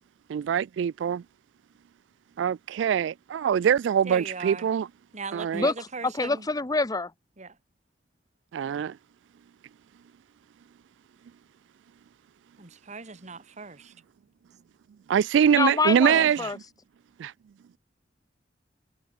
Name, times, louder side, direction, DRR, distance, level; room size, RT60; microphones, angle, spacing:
voice 1, 0.3-1.2 2.4-4.9 5.3-5.7 8.5-9.0 15.1-16.4 17.2-17.3, right 8 dB, 85° right, 0.3 m, -23 dB
voice 2, 4.0-4.7 5.1-6.5 7.4-7.6 12.6-13.9 16.1-16.5, right 4 dB, 40° right, 1.9 m, -38 dB
voice 3, 5.5-7.1 15.5-16.6, left 3 dB, 20° left, 0.9 m, -26 dB
head